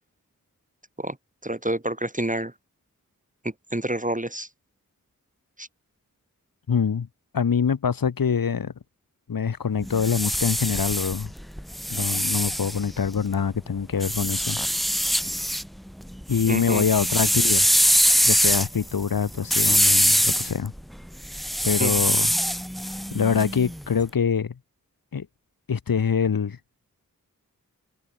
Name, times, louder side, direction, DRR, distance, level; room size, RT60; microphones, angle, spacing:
voice 1, 1.4-2.5 3.7-4.5 5.6-5.7 16.5-16.8 21.8-22.0, right 1 dB, 25° right, 6.7 m, -28 dB
voice 2, 6.7-7.1 7.3-8.7 9.3-11.3 11.9-14.6 16.3-17.7 18.3-20.7 21.6-22.3 23.1-24.5 25.1-25.3 25.7-26.6, left 6 dB, 90° left, 1.1 m, -24 dB
sound 1, 9.8-13.3 14.0-15.7 16.0-23.9, equal, ahead, 1.0 m, -23 dB
wide cardioid pair, 50°, 33 cm